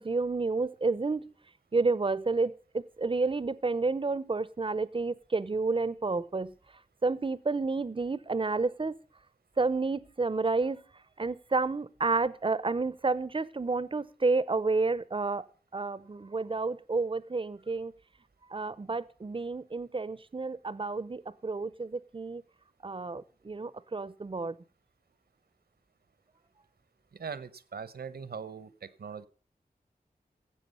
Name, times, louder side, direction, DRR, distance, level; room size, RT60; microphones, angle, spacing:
voice 1, 0.0-1.3 1.7-6.5 7.0-8.9 9.6-10.8 11.2-15.5 15.7-17.9 18.5-22.4 22.8-24.6, right 3 dB, 35° right, 0.6 m, -30 dB
voice 2, 27.1-29.3, right 6 dB, 80° right, 0.9 m, -41 dB
16.0 x 7.5 x 5.4 m
wide cardioid pair, 90°, 16 cm